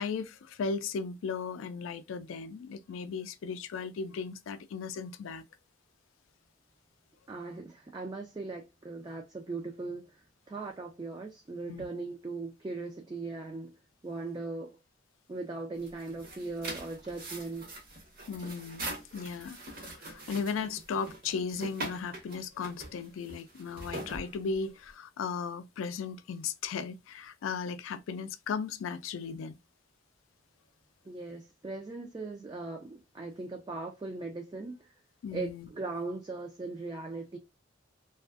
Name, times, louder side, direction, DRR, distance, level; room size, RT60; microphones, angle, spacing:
voice 1, 0.0-5.4 11.7-11.9 18.3-29.6 35.2-35.7, left 5 dB, 85° left, 0.3 m, -36 dB
voice 2, 7.3-10.2 10.5-13.7 14.0-14.8 15.3-17.8 31.1-34.9 35.3-37.4, right 3 dB, 20° right, 0.3 m, -39 dB
sound 1, 15.7-24.9, right 2 dB, 50° right, 0.8 m, -43 dB
2.5 x 2.3 x 2.3 m
head